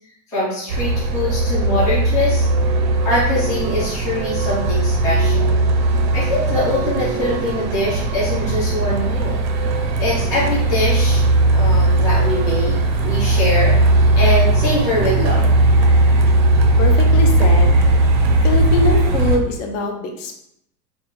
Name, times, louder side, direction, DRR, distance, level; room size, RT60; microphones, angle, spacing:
voice 1, 0.3-2.5 3.0-5.6 6.1-9.3 10.0-11.2 11.5-12.8 13.0-13.7 14.2-15.5, left 1 dB, 10° left, -8 dB, 0.3 m, -23 dB
Truck, 0.7-19.4, right 2 dB, 90° right, 0.9 m, -17 dB
voice 2, 16.8-17.8 18.4-20.4, left 2 dB, 50° left, 3 dB, 0.7 m, -23 dB
4.0 x 2.3 x 3.6 m, 0.75 s
supercardioid pair, 155°, 49 cm